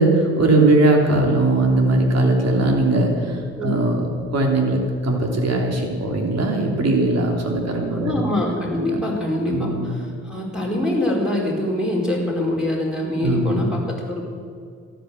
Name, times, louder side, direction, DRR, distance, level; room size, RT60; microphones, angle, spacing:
voice 1, 0.0-8.1 9.5-10.0 13.2-13.6, right 2 dB, 50° right, 2 dB, 3.4 m, -19 dB
voice 2, 7.9-14.2, left 1 dB, ahead, -3 dB, 4.6 m, -24 dB
13.5 x 10.5 x 8.0 m, 2.2 s
hypercardioid pair, 50°, 34 cm